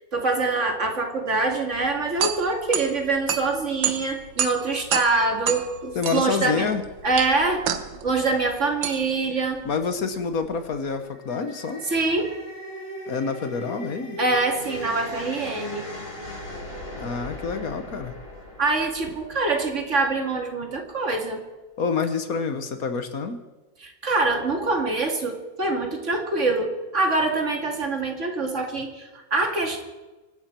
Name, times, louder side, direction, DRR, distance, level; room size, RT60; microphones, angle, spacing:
voice 1, 0.1-6.7 7.0-7.6 8.0-9.6 11.9-12.3 14.2-15.8 18.6-21.4 23.8-29.8, right 3 dB, 40° right, 3 dB, 2.4 m, -24 dB
sound 1, 1.7-10.9, right 9 dB, 80° right, 1.7 m, -31 dB
voice 2, 5.9-6.8 9.6-11.8 13.1-14.2 16.9-18.1 21.8-23.4, left 5 dB, 55° left, 9 dB, 1.5 m, -27 dB
sound 2, 11.1-20.3, left 1 dB, 90° left, 5.3 m, -38 dB
24.5 x 12.5 x 4.5 m, 1.2 s
omnidirectional pair, 2.0 m